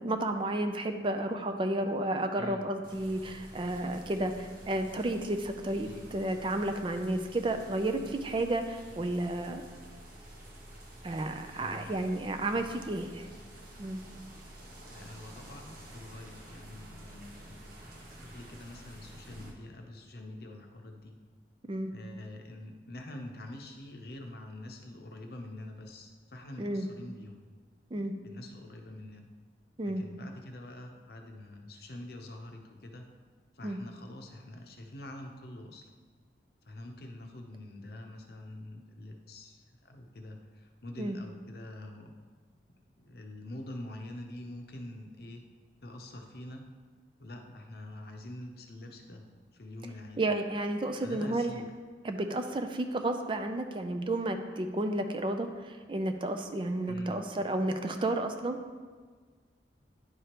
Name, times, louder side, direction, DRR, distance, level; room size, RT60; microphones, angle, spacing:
voice 1, 0.0-9.6 11.0-13.3 13.8-14.0 21.7-21.9 26.6-26.9 27.9-28.1 29.8-30.0 33.6-33.8 41.0-41.2 50.2-51.5 52.0-58.6, right 1 dB, 30° right, 6 dB, 0.4 m, -32 dB
sound 1, 2.8-19.5, right 1 dB, 50° right, 1.3 m, -50 dB
voice 2, 11.5-12.1 12.5-12.6 14.9-17.5 18.2-21.2 21.9-27.5 28.2-29.3 29.8-33.0 33.5-35.9 36.7-42.1 43.0-45.4 45.8-46.7 47.2-49.2 49.6-50.2 51.0-51.6 56.9-57.2, left 1 dB, 60° left, 3 dB, 0.7 m, -45 dB
10.0 x 4.8 x 3.0 m, 1.5 s
head